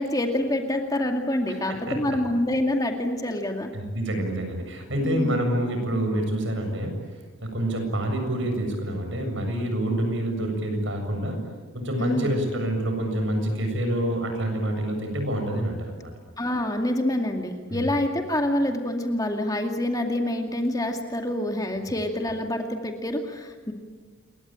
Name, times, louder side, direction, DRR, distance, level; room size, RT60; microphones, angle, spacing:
voice 1, 0.0-3.7 5.0-5.3 12.0-12.3 16.4-23.7, left 1 dB, 15° left, 4 dB, 2.3 m, -26 dB
voice 2, 3.7-7.0 7.4-11.4 11.7-16.1 17.7-17.8, right 1 dB, 65° right, 5 dB, 7.5 m, -27 dB
28.5 x 23.5 x 9.0 m, 1.4 s
head